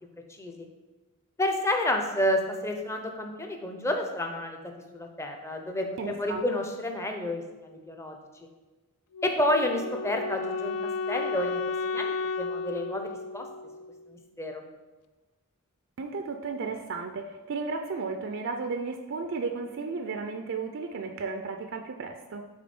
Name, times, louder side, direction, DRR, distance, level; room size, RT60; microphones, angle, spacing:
voice 1, 1.4-8.1 9.2-10.8 11.1-13.5 14.1-14.6, left 1 dB, 10° left, 3 dB, 0.6 m, -30 dB
voice 2, 6.0-6.4 16.0-22.4, right 4 dB, 55° right, 5 dB, 0.4 m, -34 dB
Wind instrument woodwind instrument, 9.1-14.2, left 4 dB, 80° left, 0.3 m, -33 dB
6.1 x 4.0 x 4.3 m, 1.2 s
head